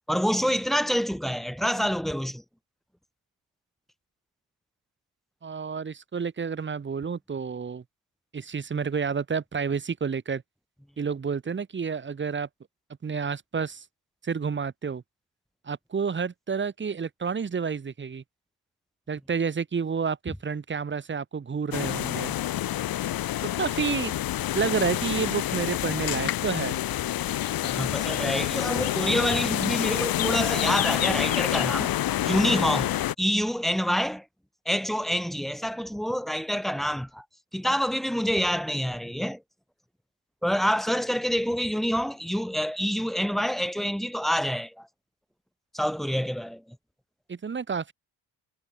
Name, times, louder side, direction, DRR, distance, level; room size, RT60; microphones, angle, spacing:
voice 1, 0.1-2.4 27.6-31.9 32.2-34.2 34.7-37.2 37.5-39.4 40.4-44.9 45.7-46.6, equal, ahead, 2.4 m, -27 dB
voice 2, 5.4-7.8 8.3-10.4 11.0-12.5 13.0-13.8 14.2-15.0 15.7-18.2 19.1-22.3 23.6-24.1 24.5-26.8 47.3-47.9, right 6 dB, 25° right, 1.4 m, -30 dB
sound 1, 21.7-33.1, left 13 dB, 55° left, 0.9 m, -27 dB
cardioid pair, 120°, 41 cm